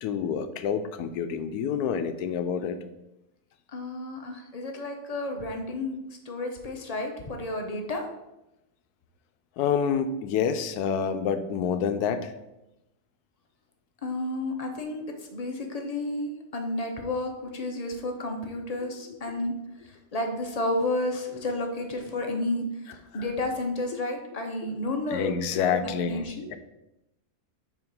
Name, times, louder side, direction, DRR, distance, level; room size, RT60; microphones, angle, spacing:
voice 1, 0.0-2.8 9.6-12.3 25.1-26.2 26.5-26.6, left 7 dB, 90° left, 9 dB, 1.1 m, -27 dB
voice 2, 3.7-8.0 14.0-25.3 25.7-26.5, left 1 dB, 35° left, 3 dB, 0.6 m, -31 dB
7.1 x 3.2 x 5.2 m, 0.92 s
omnidirectional pair, 1.6 m